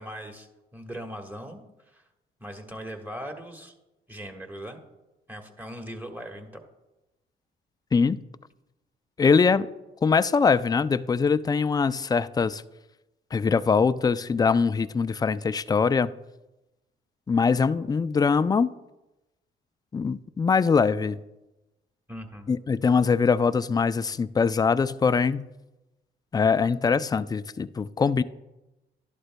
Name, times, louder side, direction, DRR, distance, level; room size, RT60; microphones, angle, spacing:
voice 1, 0.0-1.6 1.9-2.0 2.4-3.7 4.1-4.8 5.3-6.5 22.1-22.5, equal, 10° right, 3 dB, 1.5 m, -39 dB
voice 2, 9.2-9.7 10.0-12.6 13.3-16.1 17.3-18.7 19.9-21.2 22.5-25.5 26.3-28.2, left 5 dB, 20° left, 14 dB, 0.3 m, -22 dB
12.0 x 11.5 x 2.2 m, 1.0 s
cardioid pair, 90°, 20 cm